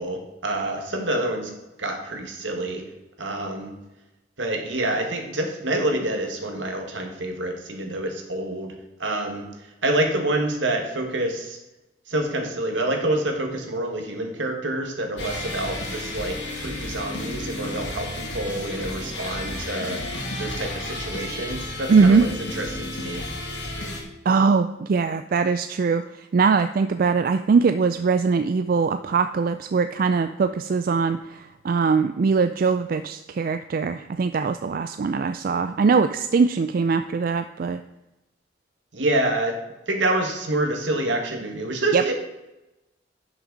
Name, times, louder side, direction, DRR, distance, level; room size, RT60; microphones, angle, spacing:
voice 1, 0.0-1.5 1.8-2.8 3.2-3.7 4.4-8.7 9.0-9.5 9.8-11.6 12.1-20.0 20.4-23.2 38.9-39.6 39.9-42.1, right 1 dB, 75° right, 3 dB, 1.7 m, -27 dB
sound 1, 15.2-24.0, left 1 dB, 75° left, 2.4 m, -32 dB
voice 2, 21.9-22.3 24.3-26.0 26.3-37.8 41.9-42.0, right 5 dB, 50° right, 9 dB, 0.3 m, -21 dB
11.0 x 6.3 x 3.9 m, 0.99 s
head